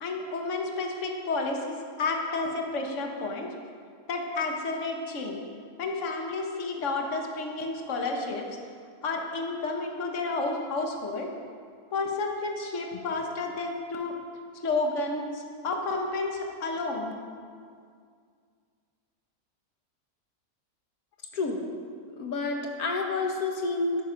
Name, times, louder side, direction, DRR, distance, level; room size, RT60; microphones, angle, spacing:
voice 1, 0.0-3.5 4.1-5.4 5.8-8.4 9.0-11.3 11.9-14.1 14.6-17.2, left 3 dB, 55° left, 2 dB, 1.6 m, -31 dB
voice 2, 22.2-24.0, left 3 dB, 85° left, 2 dB, 1.7 m, -29 dB
13.5 x 11.0 x 5.2 m, 2.1 s
omnidirectional pair, 1.5 m